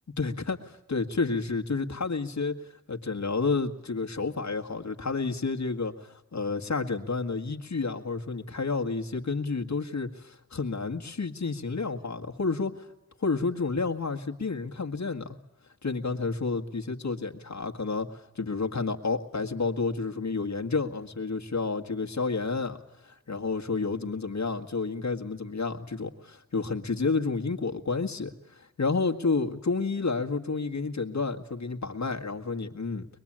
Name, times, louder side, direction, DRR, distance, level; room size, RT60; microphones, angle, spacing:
voice 1, 0.2-2.6 2.9-12.9 13.2-15.4 15.8-22.8 23.0-33.1, left 4 dB, 70° left, 3 dB, 1.8 m, -30 dB
24.0 x 21.5 x 8.8 m, 0.91 s
wide cardioid pair, 80°, 29 cm